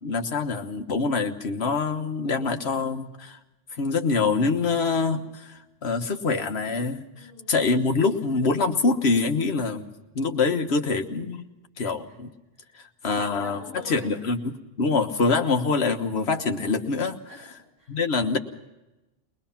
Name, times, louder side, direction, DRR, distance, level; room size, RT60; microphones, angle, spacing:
voice 1, 0.0-3.4 3.8-7.1 7.5-9.9 10.1-11.4 11.8-12.3 13.0-13.6 13.9-14.4 14.8-17.2 17.9-18.4, left 4 dB, 60° left, 6 dB, 1.5 m, -25 dB
voice 2, 7.1-7.6 12.0-12.2 12.6-12.8 13.1-14.1 17.2-18.0, left 2 dB, 80° right, -2 dB, 7.9 m, -46 dB
22.5 x 20.5 x 5.8 m, 1.0 s
omnidirectional pair, 1.3 m